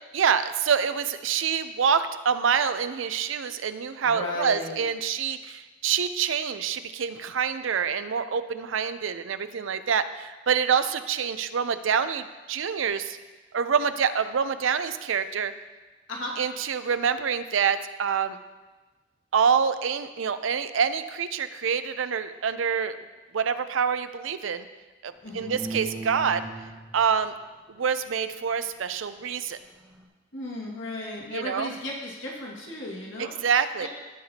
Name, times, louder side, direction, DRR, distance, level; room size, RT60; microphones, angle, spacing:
voice 1, 0.1-13.2 13.5-15.5 16.4-18.4 19.3-23.0 23.3-24.7 25.0-26.5 26.9-27.3 27.7-29.6 31.3-31.7 33.2-33.9, right 7 dB, 80° right, 11 dB, 0.5 m, -26 dB
voice 2, 4.0-4.8 16.1-16.3 25.2-25.5 30.3-33.3 33.8-33.9, left 1 dB, 70° left, -3 dB, 2.0 m, -35 dB
sound 1, 25.3-27.3 29.9-30.0, right 3 dB, 15° right, 1.3 m, -38 dB
16.0 x 6.7 x 2.8 m, 1.2 s
head